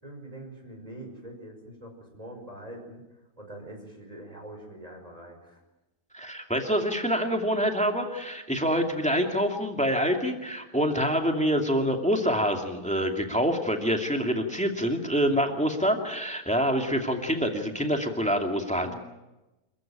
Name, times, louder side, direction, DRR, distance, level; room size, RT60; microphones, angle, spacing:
voice 1, 0.0-5.6 15.3-15.6 18.8-19.0, right 1 dB, 20° right, 2 dB, 5.8 m, -44 dB
voice 2, 6.1-18.9, equal, 5° left, 3 dB, 2.3 m, -26 dB
28.0 x 14.5 x 9.0 m, 1.0 s
omnidirectional pair, 1.8 m